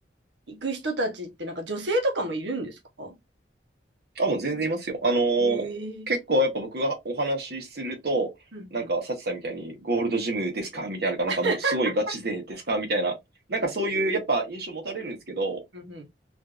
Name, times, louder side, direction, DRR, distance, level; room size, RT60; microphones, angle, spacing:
voice 1, 0.5-3.1 5.4-6.1 8.5-8.9 11.3-11.8 15.7-16.1, right 2 dB, 90° right, 0.9 m, -30 dB
voice 2, 4.2-5.7 6.1-8.3 8.7-13.1 13.5-15.6, right 2 dB, 65° right, 1.0 m, -27 dB
3.5 x 2.6 x 2.4 m
head